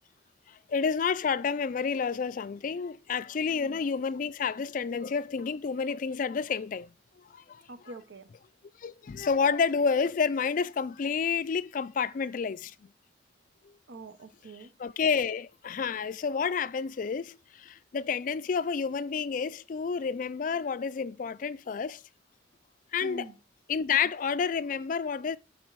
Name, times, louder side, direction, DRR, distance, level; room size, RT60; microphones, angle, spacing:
voice 1, 0.5-6.9 7.2-7.6 8.8-12.7 14.8-22.0 22.9-23.3 23.7-25.4, left 6 dB, 45° left, 0.3 m, -30 dB
voice 2, 3.5-3.8 7.7-8.3 13.9-14.7 23.0-23.4, right 2 dB, 75° right, 0.7 m, -45 dB
8.6 x 4.3 x 4.6 m
head